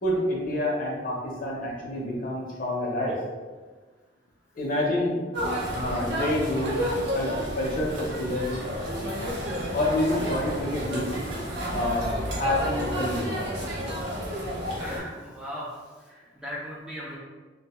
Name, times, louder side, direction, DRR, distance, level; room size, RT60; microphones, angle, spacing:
voice 1, 0.0-3.2 4.5-5.2 5.7-6.7 7.1-8.5 9.7-11.1 11.7-13.3, left 1 dB, 45° left, -3 dB, 0.6 m, -28 dB
sound 1, 5.3-15.0, equal, 75° right, 0.8 m, -30 dB
voice 2, 14.8-17.2, equal, 5° right, -6 dB, 0.3 m, -38 dB
2.5 x 2.2 x 2.9 m, 1.4 s
head